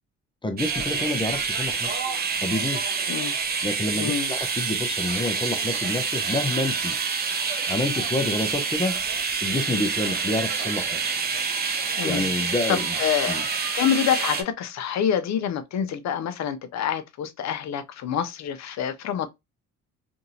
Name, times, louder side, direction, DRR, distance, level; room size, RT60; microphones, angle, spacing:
voice 1, 0.4-2.0 2.4-3.0 3.6-6.9 7.7-9.0 9.4-11.2 12.0-13.0 13.3-13.4, left 2 dB, 15° left, 0.7 m, -28 dB
sound 1, 0.6-14.4, right 5 dB, 30° right, 0.5 m, -27 dB
voice 2, 3.9-4.3 12.0-13.4 13.7-19.3, left 9 dB, 65° left, 0.6 m, -27 dB
2.8 x 2.7 x 2.7 m
cardioid pair, 90°, 30 cm